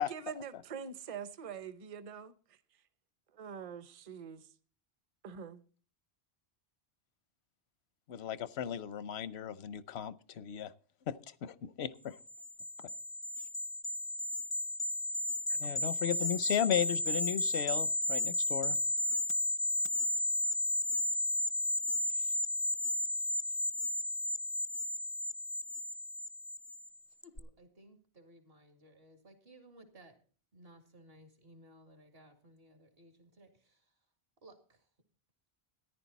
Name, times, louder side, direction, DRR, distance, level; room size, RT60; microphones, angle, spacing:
voice 1, 0.1-2.6 3.3-4.5 5.2-5.6 15.5-15.7, right 7 dB, 35° right, 0.8 m, -44 dB
voice 2, 8.1-10.7 11.1-12.2 15.6-18.8, left 10 dB, 85° left, 1.0 m, -35 dB
sound 1, 12.3-26.9 27.2-27.4, left 1 dB, 20° left, 0.4 m, -33 dB
voice 3, 27.2-30.2 30.5-33.9 34.4-34.9, right 1 dB, 65° right, 2.4 m, -59 dB
14.0 x 10.5 x 4.1 m
omnidirectional pair, 1.1 m